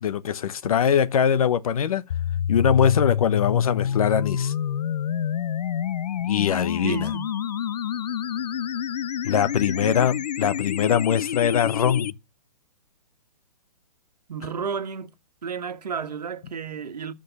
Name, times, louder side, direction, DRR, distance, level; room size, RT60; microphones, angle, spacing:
voice 1, 0.0-2.0 2.5-4.5 6.2-7.1 9.2-12.1, left 8 dB, 60° left, 1.0 m, -22 dB
sound 1, 2.1-12.1, left 9 dB, 80° left, 0.5 m, -28 dB
voice 2, 6.8-7.3 9.8-10.2 14.3-15.1 15.4-17.1, right 6 dB, 80° right, 1.5 m, -32 dB
13.5 x 5.2 x 7.1 m
hypercardioid pair, 150°, 21 cm